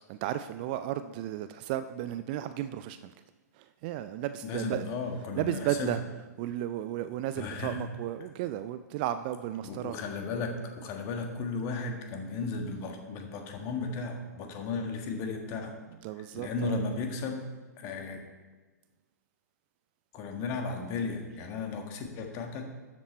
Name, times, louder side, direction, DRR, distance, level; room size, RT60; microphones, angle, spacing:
voice 1, 0.1-3.1 3.5-4.9 5.4-6.0 6.4-10.0 16.0-16.8, right 12 dB, 30° right, 11 dB, 0.4 m, -34 dB
voice 2, 4.4-6.0 7.4-7.8 9.6-15.7 16.3-17.5 17.8-18.2 20.1-22.7, left 4 dB, 30° left, 4 dB, 1.6 m, -35 dB
12.5 x 7.3 x 4.3 m, 1.2 s
figure-of-eight pair, 110°, 10 cm